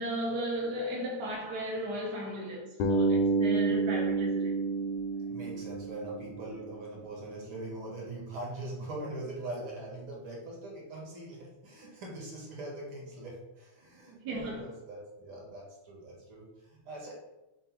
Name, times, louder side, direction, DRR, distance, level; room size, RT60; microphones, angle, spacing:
voice 1, 0.0-4.5 14.2-14.6, right 1 dB, 85° right, 0.9 m, -35 dB
Bass guitar, 2.8-6.7, right 3 dB, 75° left, 1.7 m, -29 dB
voice 2, 5.2-17.1, right 2 dB, 55° right, 1.6 m, -42 dB
5.6 x 2.1 x 4.5 m
omnidirectional pair, 3.4 m